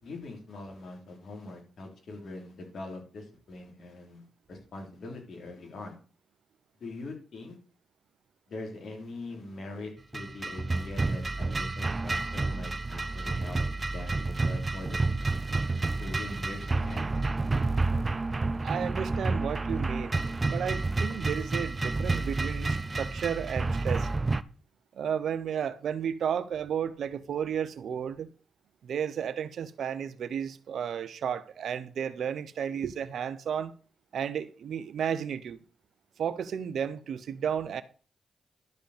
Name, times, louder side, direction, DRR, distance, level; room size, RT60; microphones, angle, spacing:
voice 1, 0.0-5.9 6.8-7.6 8.5-13.6 13.9-15.1 16.0-17.0, left 2 dB, 65° left, 3.7 m, -42 dB
sound 1, 10.1-24.4, right 3 dB, 35° right, 0.6 m, -30 dB
voice 2, 18.6-24.1 24.9-28.3 28.8-33.7 34.1-35.6 36.2-37.8, right 8 dB, 75° right, 0.9 m, -33 dB
12.0 x 5.2 x 6.6 m
supercardioid pair, 55°, 0 cm